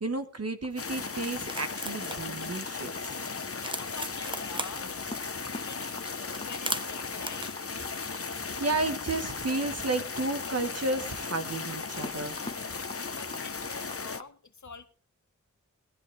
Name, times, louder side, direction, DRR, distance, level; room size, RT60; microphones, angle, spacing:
voice 1, 0.0-3.1 8.6-12.4, right 2 dB, 50° right, 1.5 m, -32 dB
sound 1, 0.6-14.3, left 2 dB, 20° left, 1.3 m, -46 dB
sound 2, 0.7-13.6, right 1 dB, 15° right, 1.1 m, -43 dB
sound 3, 0.8-14.2, left 4 dB, 45° left, 0.9 m, -36 dB
voice 2, 3.4-5.0 5.4-7.5 13.1-14.9, left 5 dB, 65° left, 1.4 m, -46 dB
21.0 x 10.5 x 3.4 m
wide cardioid pair, 65°, 32 cm